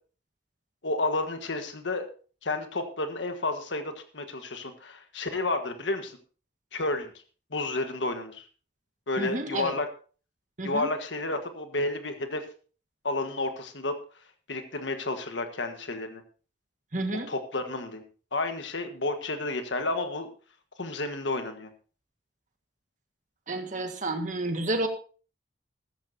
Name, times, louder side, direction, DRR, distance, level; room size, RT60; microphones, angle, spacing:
voice 1, 0.8-2.1 2.4-6.2 6.7-7.1 7.5-8.5 9.1-9.9 10.6-12.5 13.0-13.9 14.5-16.2 17.3-18.0 18.3-20.3 20.8-21.7, left 2 dB, 80° left, 7 dB, 1.5 m, -31 dB
voice 2, 9.2-9.7 10.6-10.9 16.9-17.3 23.5-24.9, right 2 dB, 45° right, 6 dB, 1.7 m, -30 dB
14.0 x 14.0 x 2.8 m, 0.38 s
head